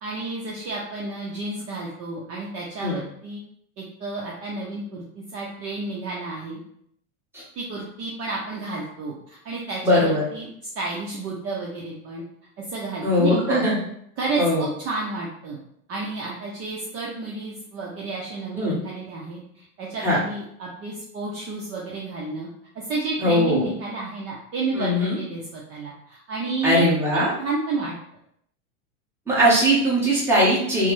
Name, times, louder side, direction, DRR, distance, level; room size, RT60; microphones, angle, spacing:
voice 1, 0.0-3.4 3.8-6.6 7.6-10.5 10.8-12.2 12.6-13.6 14.2-15.6 15.9-22.5 22.9-26.9 27.1-27.9, right 3 dB, 35° right, -3 dB, 0.6 m, -31 dB
voice 2, 9.8-10.2 13.0-13.8 14.4-14.6 18.5-18.7 20.0-20.2 23.2-23.7 24.7-25.2 26.6-27.3 29.3-30.9, equal, 5° right, -7 dB, 1.0 m, -20 dB
3.2 x 2.0 x 3.0 m, 0.70 s
supercardioid pair, 125°, 40 cm